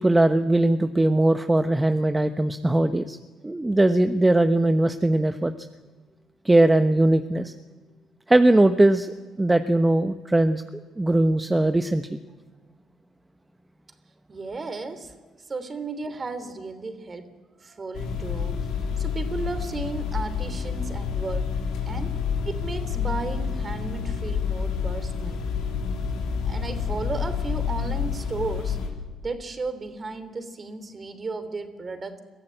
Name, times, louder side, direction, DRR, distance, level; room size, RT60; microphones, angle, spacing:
voice 1, 0.0-3.2 3.4-5.5 6.4-7.5 8.3-10.6 11.0-12.2, right 1 dB, 15° right, 8 dB, 1.1 m, -20 dB
voice 2, 14.3-15.1 15.5-17.3 17.6-18.6 19.0-22.1 22.4-25.4 26.4-28.8 29.2-32.2, right 3 dB, 35° right, 11 dB, 3.2 m, -34 dB
sound 1, 17.9-28.9, left 6 dB, 75° left, 3.5 m, -28 dB
23.0 x 14.5 x 9.0 m, 1.5 s
hypercardioid pair, 50°, 0 cm